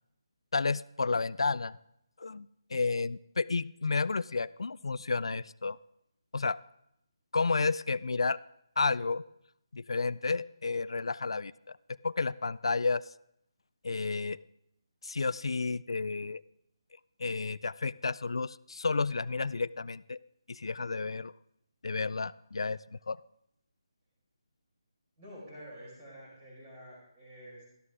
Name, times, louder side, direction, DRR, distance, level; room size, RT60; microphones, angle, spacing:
voice 1, 0.5-1.8 2.2-5.8 6.3-6.6 7.3-8.4 8.8-9.2 9.7-11.8 12.0-13.0 13.8-14.4 15.0-16.4 17.2-20.2 20.5-21.3 21.8-22.8 23.1-23.2, left 4 dB, 80° left, 19 dB, 0.3 m, -31 dB
voice 2, 25.2-27.7, equal, 15° right, -5 dB, 5.2 m, -49 dB
12.5 x 12.5 x 3.6 m, 0.78 s
hypercardioid pair, 170°, 3 cm